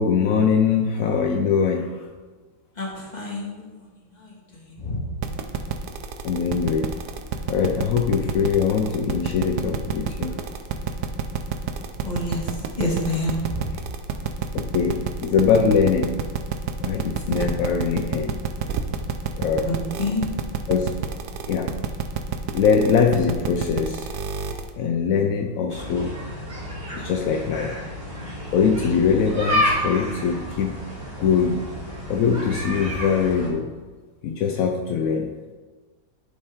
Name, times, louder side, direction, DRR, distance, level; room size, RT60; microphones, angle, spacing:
voice 1, 0.0-2.0 6.2-6.9 7.5-10.4 14.7-16.2 16.8-18.4 19.3-19.7 20.7-20.9 21.5-21.7 22.5-24.1 24.8-26.2 26.9-27.7 28.5-30.7 31.2-31.6 32.1-33.7 34.2-35.3, left 6 dB, 70° left, 3 dB, 0.8 m, -22 dB
voice 2, 2.7-3.8 4.1-5.0 12.0-12.5 12.8-13.7 19.7-20.2, left 2 dB, 25° left, -3 dB, 1.7 m, -28 dB
sound 1, 5.2-24.7, right 7 dB, 70° right, 1.2 m, -28 dB
sound 2, 25.7-33.5, equal, 45° right, 3.1 m, -30 dB
11.0 x 5.3 x 3.6 m, 1.3 s
omnidirectional pair, 2.1 m